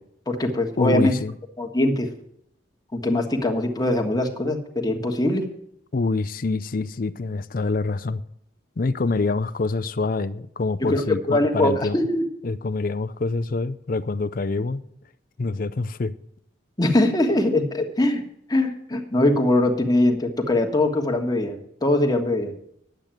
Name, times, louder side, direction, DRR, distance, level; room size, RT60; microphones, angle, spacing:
voice 1, 0.3-1.1 1.6-2.1 2.9-5.4 10.9-12.2 16.8-18.2 18.5-22.5, left 1 dB, 20° left, 1.5 m, -22 dB
voice 2, 0.8-1.3 5.9-8.2 8.8-12.0 12.4-14.8 15.4-16.1, left 3 dB, 50° left, 0.5 m, -26 dB
10.5 x 8.3 x 8.9 m
head